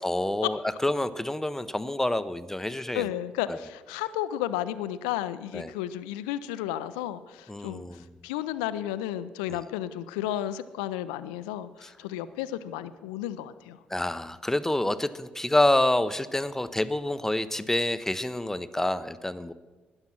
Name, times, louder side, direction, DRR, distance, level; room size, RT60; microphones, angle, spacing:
voice 1, 0.0-3.1 3.5-3.6 5.5-5.7 7.5-8.0 11.8-11.9 13.9-19.5, left 1 dB, 10° left, 13 dB, 0.7 m, -27 dB
voice 2, 2.7-13.8, left 12 dB, 80° left, 14 dB, 0.4 m, -33 dB
13.0 x 9.7 x 6.0 m, 1.3 s
hypercardioid pair, 45°, 4 cm